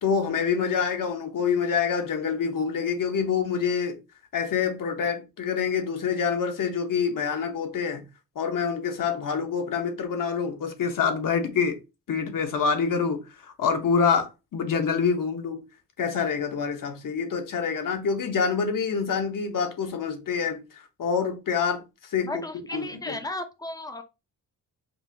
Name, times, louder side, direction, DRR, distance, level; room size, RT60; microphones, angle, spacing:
voice 1, 0.0-4.0 4.3-8.0 8.4-11.8 12.1-15.6 16.0-20.6 21.0-21.8 22.1-22.3 22.7-23.2, left 6 dB, 55° left, 1.0 m, -26 dB
voice 2, 22.2-24.0, left 2 dB, 10° left, 0.5 m, -34 dB
5.4 x 2.4 x 2.8 m
cardioid pair, 110°, 38 cm